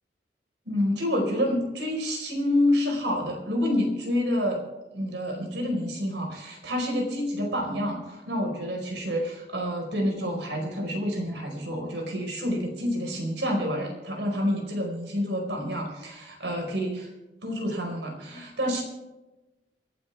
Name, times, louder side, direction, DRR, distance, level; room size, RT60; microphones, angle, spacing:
voice 1, 0.6-4.6 4.9-17.1 17.4-18.8, left 1 dB, 80° right, 2 dB, 4.8 m, -28 dB
28.5 x 12.0 x 3.5 m, 1.0 s
head